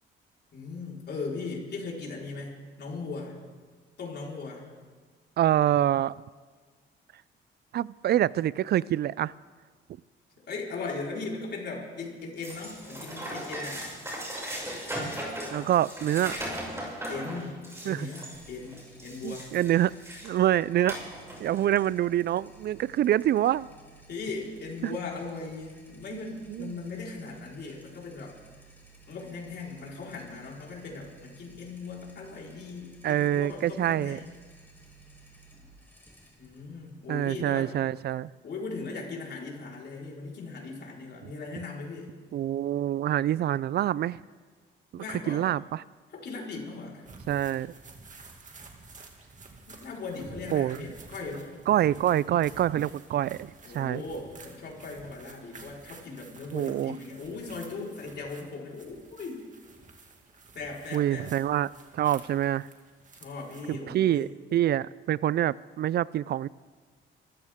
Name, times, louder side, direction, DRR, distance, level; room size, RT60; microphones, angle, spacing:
voice 1, 0.5-3.4 4.0-4.7 10.5-13.9 17.1-17.6 17.8-19.5 24.1-28.4 29.1-34.3 36.4-37.7 38.4-42.1 44.9-45.5 46.1-47.1 49.7-51.5 53.6-59.5 60.5-61.3 63.1-64.3, left 3 dB, 60° left, -3 dB, 4.4 m, -38 dB
voice 2, 5.4-6.1 7.7-9.3 15.5-16.4 17.9-18.1 19.2-19.9 20.2-21.0 21.4-23.7 24.8-25.0 26.5-26.8 33.0-34.2 37.1-38.3 42.3-44.2 44.9-45.8 47.3-47.7 50.5-50.8 51.7-54.0 56.5-56.9 60.9-62.7 63.7-66.5, right 12 dB, 55° right, 21 dB, 0.4 m, -26 dB
sound 1, 12.4-20.4 20.9-21.9, right 1 dB, 15° right, 6.4 m, -38 dB
sound 2, 18.3-37.6, right 3 dB, 10° left, 4.3 m, -55 dB
sound 3, 47.0-63.8, right 3 dB, 40° right, 2.2 m, -51 dB
25.0 x 14.5 x 3.7 m, 1.5 s
cardioid pair, 90°, 20 cm